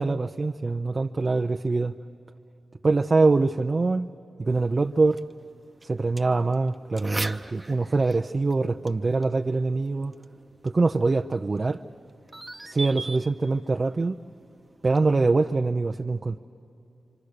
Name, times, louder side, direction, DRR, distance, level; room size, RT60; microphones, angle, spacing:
voice 1, 0.0-2.0 2.8-4.1 4.4-5.2 5.8-10.1 10.6-11.8 12.6-14.2 14.8-16.4, right 3 dB, 45° right, 5 dB, 0.5 m, -24 dB
sound 1, 4.5-15.5, right 2 dB, 25° right, 0.9 m, -42 dB
26.5 x 25.0 x 6.7 m, 2.8 s
supercardioid pair, 45°, 0 cm